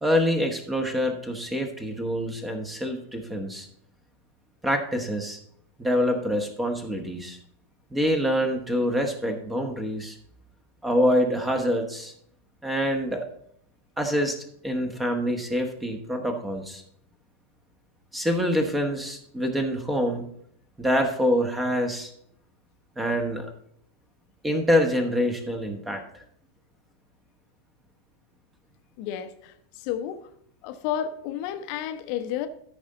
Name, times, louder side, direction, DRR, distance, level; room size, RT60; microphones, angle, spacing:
voice 1, 0.0-3.7 4.6-5.4 5.8-7.4 7.9-10.2 10.8-12.1 12.6-13.2 14.0-16.8 18.1-20.3 20.8-22.1 23.0-23.5 24.4-26.2, equal, 10° right, 1.2 m, -26 dB
voice 2, 29.0-30.3 30.6-32.5, left 10 dB, 45° left, 0.8 m, -31 dB
13.5 x 5.4 x 3.8 m
figure-of-eight pair, 90°, 0 cm